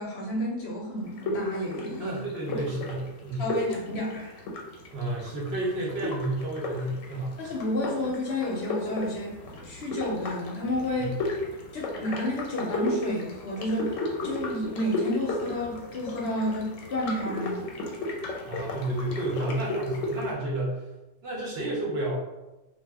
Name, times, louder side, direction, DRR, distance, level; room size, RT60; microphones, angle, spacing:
voice 1, 0.0-2.2 2.5-2.6 3.4-4.4 7.4-9.3 9.6-11.1 11.7-17.7, left 1 dB, 65° left, -3 dB, 0.7 m, -31 dB
sound 1, 1.1-20.3, left 1 dB, 85° left, 1.0 m, -35 dB
voice 2, 2.0-3.5 4.9-7.5 10.9-11.2 18.5-20.8 21.2-22.2, right 1 dB, 60° right, -3 dB, 0.7 m, -31 dB
2.2 x 2.0 x 3.3 m, 1.0 s
omnidirectional pair, 1.3 m